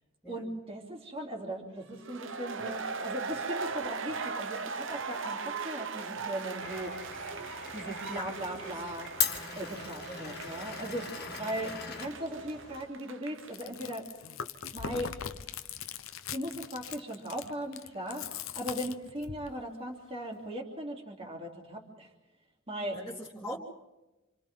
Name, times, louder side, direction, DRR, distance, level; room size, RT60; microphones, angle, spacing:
voice 1, 0.3-7.0 7.7-9.1 9.5-14.1 14.7-15.2 16.3-18.3 18.5-22.1 22.7-23.0, right 1 dB, 30° right, 0 dB, 3.2 m, -38 dB
sound 1, 2.0-13.6, right 4 dB, 65° right, 1.0 m, -39 dB
Glass, 6.6-12.8, left 7 dB, 50° left, 2.0 m, -39 dB
voice 2, 8.1-8.8 10.1-10.3 11.1-11.3 22.9-23.6, equal, ahead, -9 dB, 3.1 m, -42 dB
Chewing mastication, 13.4-19.5, left 7 dB, 85° left, 0.9 m, -41 dB
29.5 x 27.5 x 3.8 m, 1.1 s
head